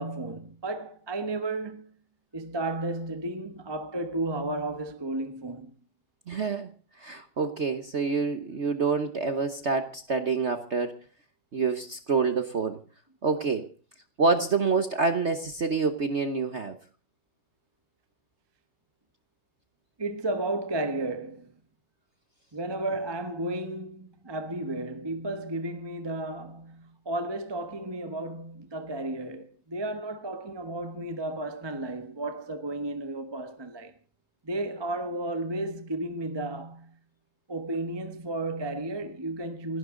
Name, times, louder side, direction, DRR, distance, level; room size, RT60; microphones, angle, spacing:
voice 1, 0.0-1.9 2.3-5.7 20.0-21.5 22.5-33.9 34.4-37.0 37.5-39.8, right 2 dB, 15° right, 1.0 m, -33 dB
voice 2, 6.3-6.7 7.0-11.0 11.5-12.8 13.2-13.7 14.2-16.8, right 4 dB, 45° right, 1.0 m, -27 dB
29.0 x 11.5 x 3.8 m
omnidirectional pair, 2.2 m